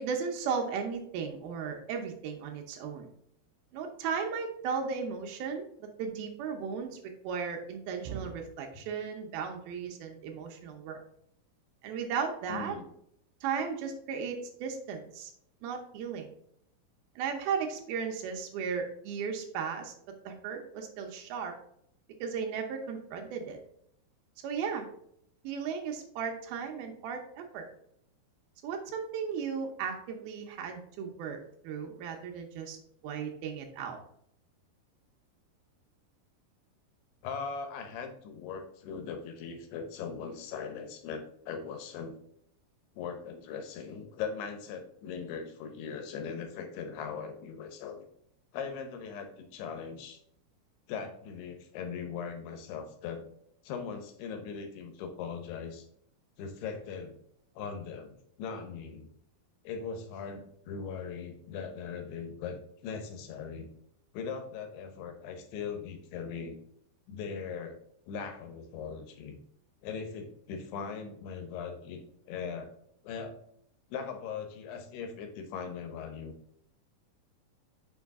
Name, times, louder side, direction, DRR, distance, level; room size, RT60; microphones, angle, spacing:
voice 1, 0.0-3.1 3.7-11.0 11.8-12.8 13.4-15.3 15.6-16.3 17.2-19.9 20.3-21.5 22.2-23.6 24.4-24.9 25.4-27.7 28.6-31.4 31.6-32.8 33.0-34.0, right 6 dB, 75° right, 3 dB, 2.5 m, -35 dB
voice 2, 12.5-12.8 37.2-42.2 43.0-48.1 48.5-50.2 50.9-53.2 53.6-55.9 56.4-57.1 57.6-59.1 59.6-63.7 64.1-66.6 67.1-67.8 68.1-69.4 69.8-72.7 73.0-73.4 73.9-76.3, left 6 dB, 90° left, 6 dB, 2.9 m, -40 dB
6.2 x 4.8 x 3.5 m, 0.71 s
omnidirectional pair, 4.5 m